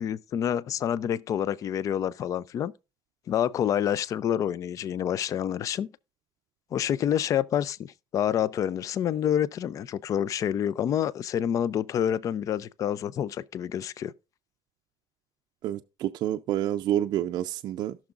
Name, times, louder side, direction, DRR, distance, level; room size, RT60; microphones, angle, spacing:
voice 1, 0.0-2.7 3.3-5.9 6.7-14.1, left 9 dB, 40° left, 0.4 m, -28 dB
voice 2, 15.6-18.0, right 12 dB, 55° right, 0.4 m, -28 dB
17.5 x 6.1 x 2.4 m
cardioid pair, 140°, 8 cm